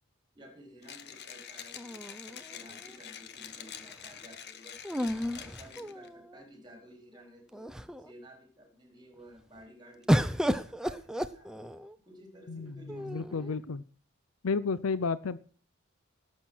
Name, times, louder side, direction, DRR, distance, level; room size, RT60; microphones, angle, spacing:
voice 1, 0.3-4.8 5.3-7.7 8.0-11.5 12.0-13.6, equal, 20° right, 2 dB, 4.0 m, -54 dB
Mechanisms, 0.8-6.1, left 8 dB, 55° left, 1.1 m, -46 dB
sound 1, 1.8-2.9 4.8-6.4 7.1-7.2 7.5-8.1 10.1-12.0 12.9-13.6, equal, 5° right, 0.6 m, -32 dB
voice 2, 13.1-13.8 14.4-15.4, left 4 dB, 85° left, 16 dB, 0.6 m, -31 dB
17.0 x 7.6 x 6.3 m, 0.44 s
head